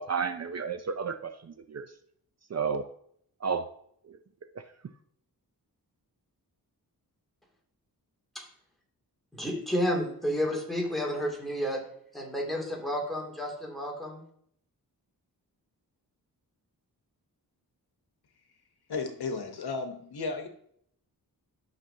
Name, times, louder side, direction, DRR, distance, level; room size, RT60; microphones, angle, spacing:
voice 1, 0.0-1.3 1.7-1.9 2.5-2.8 3.4-3.6, right 6 dB, 45° right, 9 dB, 0.6 m, -31 dB
voice 2, 9.3-11.8 12.1-14.2, equal, ahead, -2 dB, 2.7 m, -31 dB
voice 3, 18.9-20.5, left 4 dB, 80° left, 6 dB, 1.2 m, -34 dB
12.5 x 6.0 x 2.8 m, 0.67 s
wide cardioid pair, 100°, 38 cm